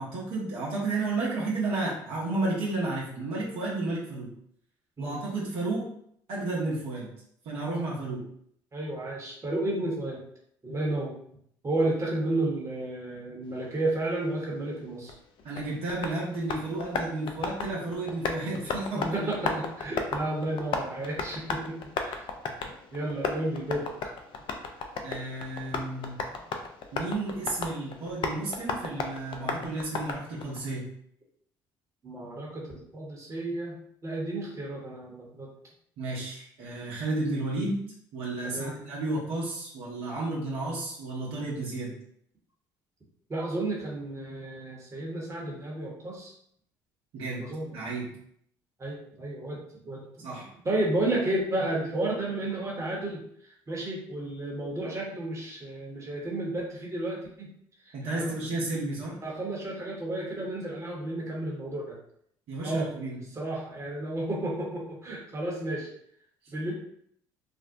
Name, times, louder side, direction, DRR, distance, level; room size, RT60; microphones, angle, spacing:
voice 1, 0.0-4.3 5.0-5.9 6.3-7.1 7.4-8.2 15.4-19.3 25.0-26.2 26.9-30.9 36.0-37.8 38.1-41.9 47.1-47.5 47.7-48.1 50.2-50.5 57.9-59.2 62.5-63.2, right 2 dB, 65° right, -5 dB, 0.8 m, -32 dB
voice 2, 8.7-10.2 10.6-11.2 11.6-15.1 18.9-22.2 22.9-24.1 32.0-33.7 34.0-35.5 38.4-38.8 43.3-46.3 47.4-47.7 48.8-50.3 50.6-57.5 57.8-58.3 59.2-62.0 62.6-62.9 63.3-65.9 66.5-66.7, right 2 dB, 30° right, -3 dB, 1.0 m, -32 dB
Tap, 15.1-30.6, left 4 dB, 50° left, 0.4 m, -35 dB
2.6 x 2.0 x 2.6 m, 0.68 s
hypercardioid pair, 55°, 11 cm